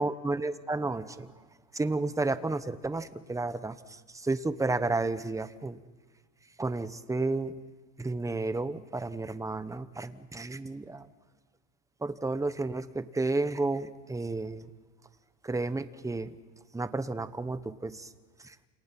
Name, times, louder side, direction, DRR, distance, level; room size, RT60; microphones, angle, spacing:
voice 1, 0.0-1.3 1.7-5.8 6.6-7.5 8.0-11.1 12.0-14.7 15.4-16.3 16.7-18.1 18.4-18.6, right 3 dB, 5° right, 12 dB, 1.0 m, -32 dB
28.5 x 27.5 x 6.0 m, 1.3 s
supercardioid pair, 130°, 50 cm